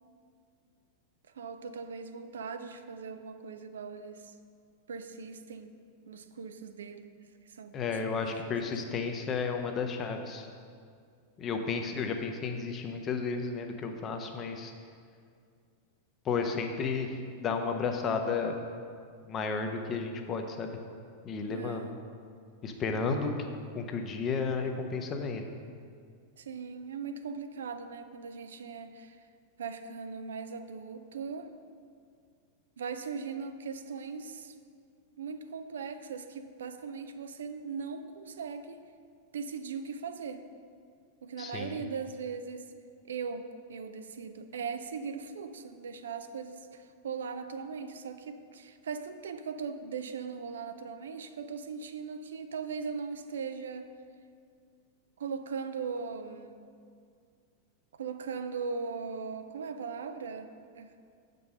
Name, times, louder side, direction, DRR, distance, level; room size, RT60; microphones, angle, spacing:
voice 1, 1.3-4.3 4.9-5.8 6.1-7.1 7.5-8.7 21.5-21.9 26.4-29.3 29.6-31.5 32.8-34.5 35.2-38.8 39.3-40.4 41.2-42.7 43.0-53.9 55.2-56.6 58.0-60.9, right 5 dB, 65° right, 9 dB, 0.4 m, -39 dB
voice 2, 7.7-10.5 11.4-14.7 16.2-18.6 19.3-20.8 21.2-21.9 22.6-23.3 23.7-25.4 41.4-41.8, left 5 dB, 30° left, 5 dB, 0.8 m, -32 dB
7.0 x 5.3 x 6.5 m, 2.2 s
figure-of-eight pair, 90°, 0 cm